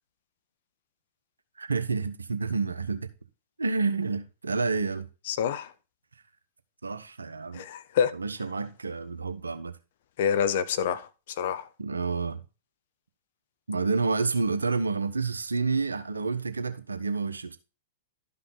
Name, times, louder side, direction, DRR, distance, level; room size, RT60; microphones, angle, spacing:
voice 1, 1.6-3.1 3.6-5.1 6.8-7.6 8.1-9.7 11.8-12.4 13.7-17.6, right 4 dB, 85° right, 1.0 m, -29 dB
voice 2, 5.3-5.7 7.5-8.1 10.2-11.7, left 8 dB, 60° left, 0.9 m, -27 dB
12.0 x 5.7 x 3.9 m
hypercardioid pair, 105°, 0 cm